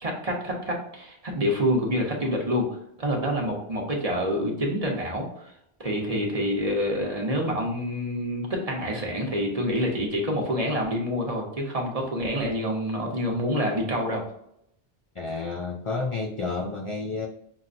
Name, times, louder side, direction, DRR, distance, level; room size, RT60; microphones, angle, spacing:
voice 1, 0.0-2.7 3.0-5.5 5.8-14.2, equal, 35° right, -1 dB, 0.9 m, -27 dB
voice 2, 15.1-17.3, left 3 dB, 50° left, 1 dB, 0.3 m, -30 dB
5.8 x 2.1 x 2.5 m, 0.74 s
omnidirectional pair, 1.1 m